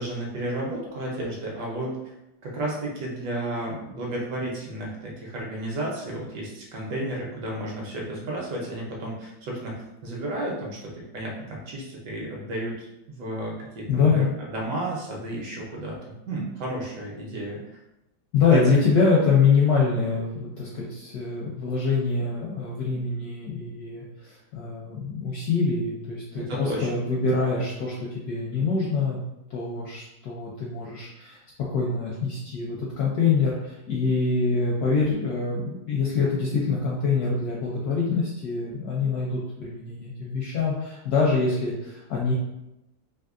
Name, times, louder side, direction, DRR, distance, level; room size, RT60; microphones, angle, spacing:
voice 1, 0.0-2.0 2.4-17.6 18.5-18.6 26.3-27.0, right 1 dB, 70° right, -3 dB, 1.2 m, -32 dB
voice 2, 13.9-14.3 18.3-29.2 29.5-31.4 31.7-42.3, left 4 dB, 75° left, -4 dB, 0.9 m, -25 dB
3.5 x 2.6 x 2.4 m, 0.90 s
omnidirectional pair, 2.1 m